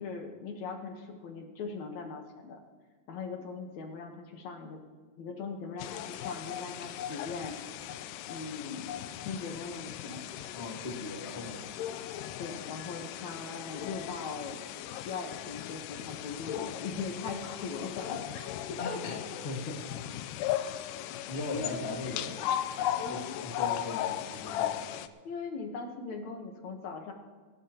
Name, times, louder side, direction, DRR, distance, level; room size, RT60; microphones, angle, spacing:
voice 1, 0.0-2.6 3.1-4.8 5.2-7.6 8.3-9.0 9.2-10.2 12.4-19.4 20.4-20.5 21.5-21.8 23.0-23.4 25.2-27.1, left 4 dB, 65° left, 3 dB, 2.2 m, -40 dB
sound 1, 5.8-25.1, left 11 dB, 80° left, 1.9 m, -37 dB
voice 2, 10.5-11.6 18.8-19.2 19.4-19.8 21.3-22.4 22.8-24.7, left 3 dB, 45° left, -1 dB, 0.8 m, -38 dB
28.5 x 11.5 x 2.9 m, 1.5 s
omnidirectional pair, 4.2 m